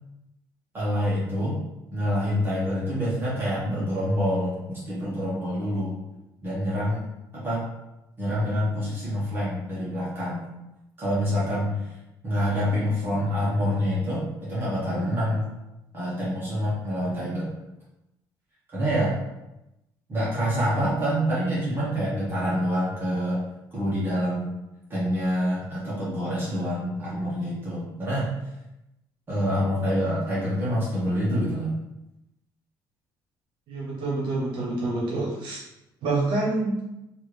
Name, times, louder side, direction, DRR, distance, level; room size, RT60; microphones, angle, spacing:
voice 1, 0.7-1.6 1.9-6.0 6.4-7.0 7.3-7.6 8.2-10.5 11.0-11.9 12.2-15.5 15.9-17.5 18.7-19.2 20.1-23.4 23.7-24.5 24.9-28.3 29.3-31.7, equal, 25° right, -8 dB, 1.0 m, -26 dB
voice 2, 33.7-35.6 36.0-36.8, right 2 dB, 70° right, -5 dB, 1.0 m, -27 dB
3.1 x 2.5 x 3.2 m, 0.93 s
cardioid pair, 155°, 8 cm